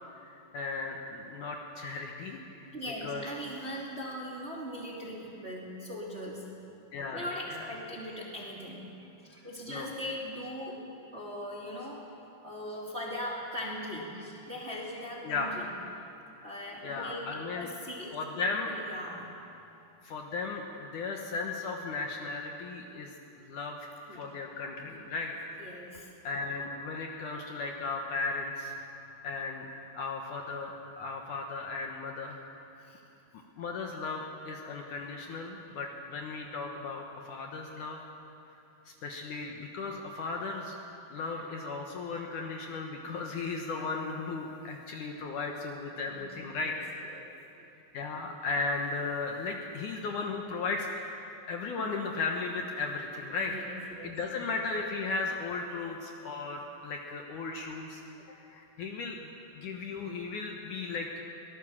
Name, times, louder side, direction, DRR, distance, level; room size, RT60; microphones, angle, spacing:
voice 1, 0.2-2.7 3.0-3.3 6.9-7.7 9.7-9.9 15.2-15.6 16.8-17.7 18.1-18.8 20.0-25.3 25.9-28.7 29.2-32.4 32.7-32.8 33.6-38.0 38.9-40.8 41.1-47.1 47.9-51.0 51.5-53.5 54.0-61.2, left 4 dB, 65° left, 1 dB, 2.3 m, -36 dB
voice 2, 2.7-6.4 7.1-8.9 9.3-10.8 11.1-12.0 12.4-15.5 16.4-19.3 24.1-24.2 24.8-25.0 25.6-26.1 32.8-33.0 46.1-46.3 46.6-46.7 47.1-47.2 47.6-47.7 53.3-54.1, equal, 20° right, -4 dB, 2.5 m, -40 dB
23.0 x 18.0 x 7.3 m, 2.9 s
omnidirectional pair, 4.5 m